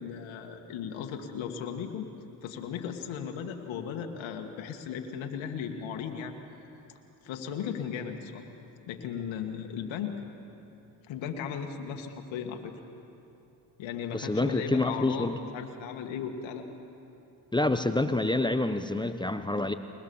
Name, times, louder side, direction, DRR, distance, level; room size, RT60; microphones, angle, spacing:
voice 1, 0.0-2.1 2.4-6.3 7.2-8.4 8.9-10.2 11.1-12.8 13.8-16.6, left 7 dB, 75° left, 4 dB, 1.9 m, -36 dB
voice 2, 14.1-15.4 17.5-19.7, left 2 dB, 10° left, 9 dB, 0.9 m, -27 dB
22.0 x 21.0 x 7.1 m, 2.8 s
supercardioid pair, 70°, 47 cm